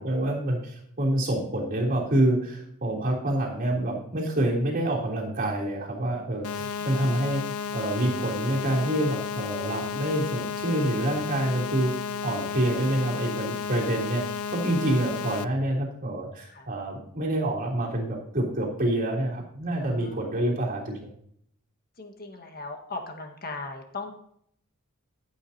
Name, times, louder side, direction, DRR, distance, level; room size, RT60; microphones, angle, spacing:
voice 1, 0.0-7.4 7.7-14.2 14.5-21.0, right 1 dB, 40° right, -3 dB, 3.3 m, -27 dB
sound 1, 6.4-15.4, left 6 dB, 80° left, 0.5 m, -33 dB
voice 2, 6.6-7.2 16.5-16.7 19.8-20.3 22.0-24.1, left 3 dB, 45° left, 4 dB, 1.7 m, -39 dB
14.5 x 8.7 x 2.9 m, 0.67 s
head